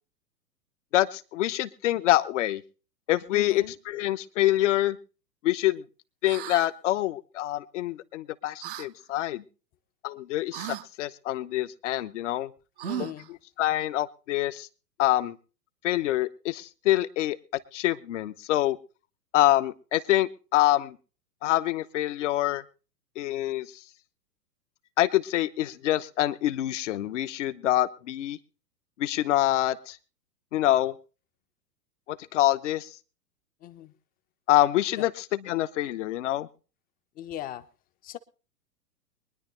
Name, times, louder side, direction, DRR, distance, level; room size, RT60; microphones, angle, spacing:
voice 1, 0.9-2.6 3.1-5.0 5.4-5.8 6.2-9.4 10.0-12.5 13.0-13.1 13.6-14.7 15.0-15.4 15.8-17.4 17.7-18.8 19.3-21.0 21.4-22.6 23.2-23.8 25.0-28.4 29.0-30.0 30.5-31.0 32.1-33.0 34.5-36.5, left 14 dB, 50° left, 1.0 m, -26 dB
voice 2, 3.3-3.7 12.8-13.3 33.6-33.9 35.0-35.1 37.2-37.7 38.0-38.2, left 11 dB, 20° left, 0.7 m, -38 dB
sound 1, 6.2-6.7 8.6-8.9 10.5-10.9 12.8-13.3, right 13 dB, 35° right, 0.6 m, -36 dB
23.0 x 10.5 x 3.2 m
figure-of-eight pair, 105°, 48 cm